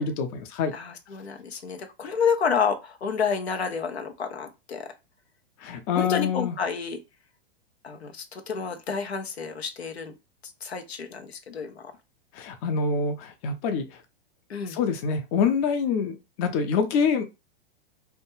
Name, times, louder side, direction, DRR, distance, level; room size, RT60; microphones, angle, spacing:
voice 1, 0.0-0.7 5.6-6.5 12.3-14.0 14.6-17.2, left 5 dB, 35° left, 0.5 m, -26 dB
voice 2, 0.7-4.9 5.9-7.0 7.8-10.1 10.6-11.9 14.5-14.8, left 6 dB, 85° left, 0.6 m, -29 dB
2.3 x 2.1 x 3.0 m
hypercardioid pair, 110°, 31 cm